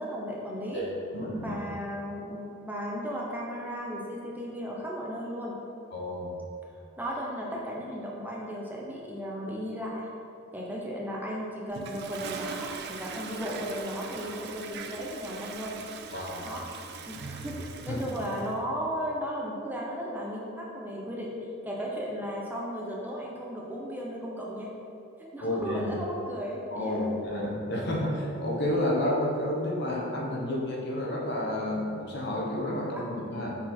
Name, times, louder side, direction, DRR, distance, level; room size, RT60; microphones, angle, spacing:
voice 1, 0.0-0.8 1.4-5.6 7.0-10.1 10.5-15.8 16.4-16.6 17.1-21.3 21.6-24.7 25.2-27.0 32.9-33.1, equal, 10° right, -3 dB, 0.7 m, -35 dB
voice 2, 0.7-1.5 5.9-6.4 16.1-16.5 17.9-18.0 25.4-25.9 26.7-33.5, left 1 dB, 55° left, -2 dB, 1.1 m, -30 dB
Toilet flush, 11.7-18.5, right 5 dB, 55° right, 0.5 m, -41 dB
7.1 x 4.2 x 4.3 m, 2.9 s
head